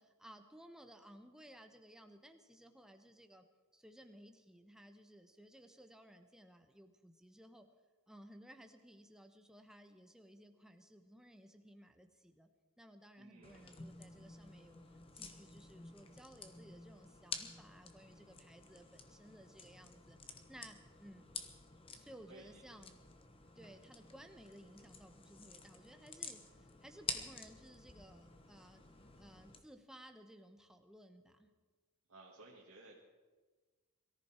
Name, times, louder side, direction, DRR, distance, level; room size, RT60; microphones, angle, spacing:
voice 1, 0.0-3.4 3.7-7.7 8.1-12.5 12.8-14.8 15.1-20.2 20.5-21.2 21.9-23.0 23.6-28.8 29.2-31.5, equal, 5° right, 6 dB, 1.0 m, -58 dB
voice 2, 13.2-13.7 22.3-22.6 32.1-33.0, right 2 dB, 70° right, -4 dB, 2.2 m, -57 dB
sound 1, 13.4-29.6, left 5 dB, 25° left, 1.1 m, -50 dB
22.5 x 14.0 x 4.4 m, 1.4 s
head